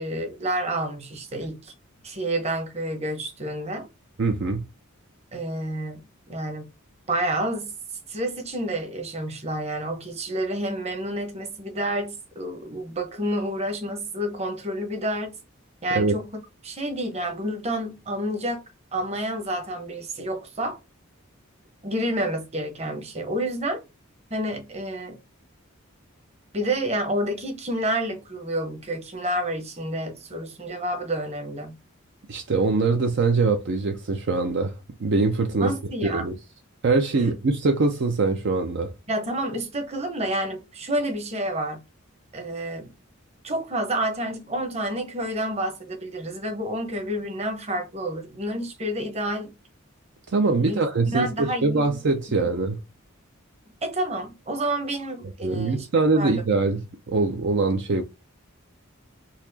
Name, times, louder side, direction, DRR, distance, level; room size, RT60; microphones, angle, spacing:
voice 1, 0.0-1.7 2.0-3.9 5.3-6.0 6.3-6.7 7.1-7.7 8.1-15.3 15.8-18.6 18.9-20.8 21.8-23.8 24.3-25.2 26.5-31.7 35.6-36.3 37.2-37.3 39.1-41.8 42.3-42.9 43.4-49.5 50.7-50.8 51.1-51.9 52.3-52.4 53.8-55.9 56.1-56.4, right 1 dB, 30° right, 0.9 m, -29 dB
voice 2, 4.2-4.6 15.9-16.1 32.3-34.7 35.0-35.7 36.0-36.3 36.8-38.9 50.3-52.8 55.4-56.8 57.1-58.0, right 3 dB, 55° right, 0.5 m, -23 dB
4.1 x 2.8 x 2.7 m
head